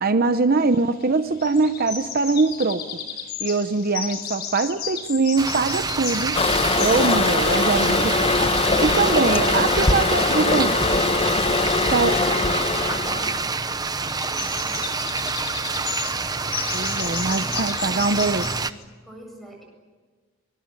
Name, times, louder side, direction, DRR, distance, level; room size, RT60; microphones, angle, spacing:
voice 1, 0.0-3.0 3.4-6.4 6.8-8.4 8.8-10.9 11.9-12.2 16.7-18.5, right 3 dB, 50° right, 9 dB, 0.9 m, -22 dB
sound 1, 0.6-18.8, left 7 dB, 55° left, 4.2 m, -35 dB
sound 2, 5.4-18.7, right 4 dB, 20° right, 0.8 m, -27 dB
Toilet flush, 6.3-13.4, left 3 dB, 30° left, 1.2 m, -21 dB
voice 2, 12.6-13.6 14.2-15.0 19.0-19.6, right 1 dB, ahead, 2 dB, 8.0 m, -46 dB
24.0 x 21.0 x 9.8 m, 1.4 s
head